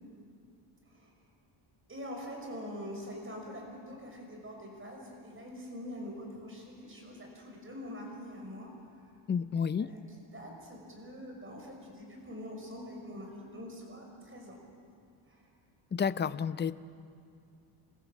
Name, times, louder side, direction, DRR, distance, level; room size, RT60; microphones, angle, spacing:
voice 1, 1.9-9.1 9.8-14.6 15.3-15.5, equal, 25° right, 0 dB, 5.9 m, -44 dB
voice 2, 9.3-9.9 15.9-16.7, left 6 dB, 25° left, 15 dB, 0.4 m, -30 dB
28.0 x 15.0 x 7.3 m, 2.4 s
cardioid pair, 115°, 50 cm